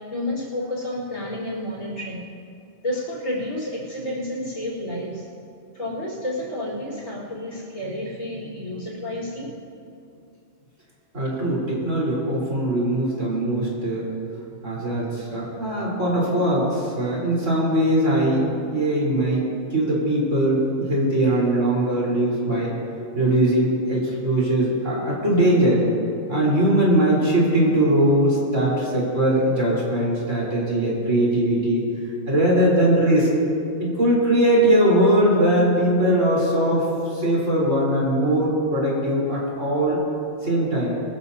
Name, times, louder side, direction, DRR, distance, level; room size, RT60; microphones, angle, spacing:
voice 1, 0.0-2.2 2.8-5.2 5.7-9.5, left 1 dB, 65° left, -4 dB, 4.8 m, -30 dB
voice 2, 11.1-14.1 14.6-22.7 23.1-25.8 26.3-31.8 32.3-33.3 33.8-40.0 40.4-41.0, right 1 dB, 60° right, -6 dB, 4.9 m, -21 dB
23.5 x 13.5 x 2.9 m, 2.6 s
omnidirectional pair, 1.4 m